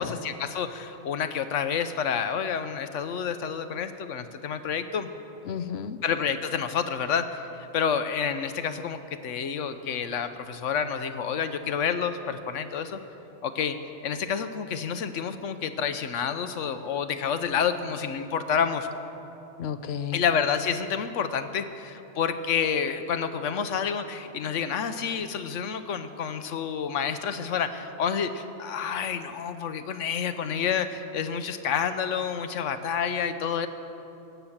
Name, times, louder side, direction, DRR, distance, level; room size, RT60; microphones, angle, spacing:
voice 1, 0.0-5.1 6.0-7.4 7.7-13.0 13.4-13.8 14.0-18.9 20.1-33.7, left 7 dB, 90° left, 10 dB, 1.1 m, -29 dB
voice 2, 5.4-6.0 19.6-20.2, left 7 dB, 65° left, 10 dB, 0.9 m, -32 dB
16.5 x 9.2 x 7.3 m, 3.0 s
omnidirectional pair, 1.2 m